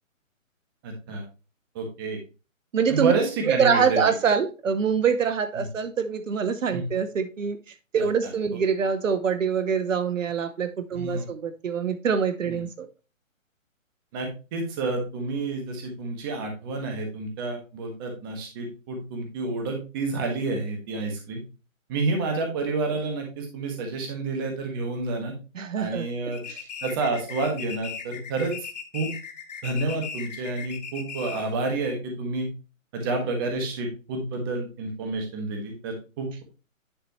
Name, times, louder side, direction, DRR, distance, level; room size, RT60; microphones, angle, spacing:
voice 1, 0.8-1.2 1.7-2.2 2.9-4.0 5.6-5.7 6.7-6.8 7.9-8.1 10.9-11.3 12.5-12.6 14.1-21.4 21.9-25.3 25.8-26.4 26.8-28.7 28.9-29.1 29.6-32.5 32.9-36.4, right 3 dB, 15° right, 3 dB, 1.3 m, -29 dB
voice 2, 2.7-3.1 3.5-7.6 7.9-12.9 25.5-26.1 26.5-26.6, right 6 dB, 65° right, 11 dB, 0.9 m, -25 dB
sound 1, 26.3-31.6, left 7 dB, 30° left, 0.9 m, -38 dB
10.0 x 4.2 x 3.0 m, 0.31 s
hypercardioid pair, 160°, 41 cm